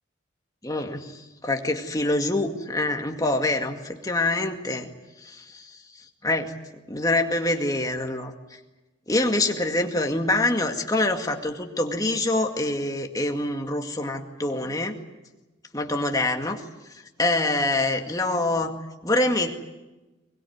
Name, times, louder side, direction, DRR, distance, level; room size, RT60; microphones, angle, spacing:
voice 1, 0.6-4.9 5.2-5.8 6.2-6.5 6.9-8.3 9.1-15.0 15.7-16.6 17.2-19.5, left 2 dB, 20° left, 3 dB, 2.1 m, -25 dB
22.5 x 21.5 x 9.6 m, 1.1 s
head